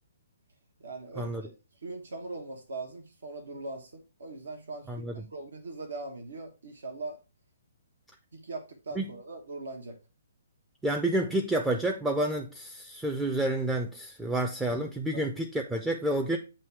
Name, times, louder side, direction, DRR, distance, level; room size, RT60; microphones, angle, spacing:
voice 1, 0.8-1.5 1.8-7.2 8.3-10.0 15.1-15.2, right 2 dB, 65° right, 0.9 m, -40 dB
voice 2, 10.8-16.4, right 1 dB, 5° right, 0.5 m, -29 dB
7.5 x 2.9 x 4.5 m
figure-of-eight pair, 130°, 0 cm